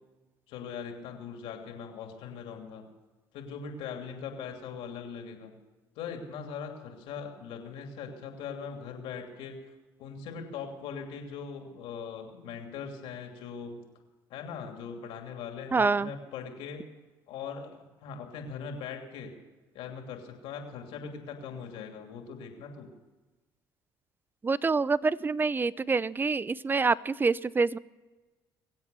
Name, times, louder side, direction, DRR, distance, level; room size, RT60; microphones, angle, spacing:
voice 1, 0.5-2.8 3.3-5.5 5.9-9.6 10.0-13.8 14.3-16.8 17.3-19.3 19.7-22.9, left 6 dB, 75° left, 3 dB, 2.9 m, -40 dB
voice 2, 15.7-16.1 24.4-27.8, right 4 dB, 20° right, 20 dB, 0.5 m, -26 dB
23.5 x 8.0 x 6.9 m, 1.2 s
supercardioid pair, 75°, 9 cm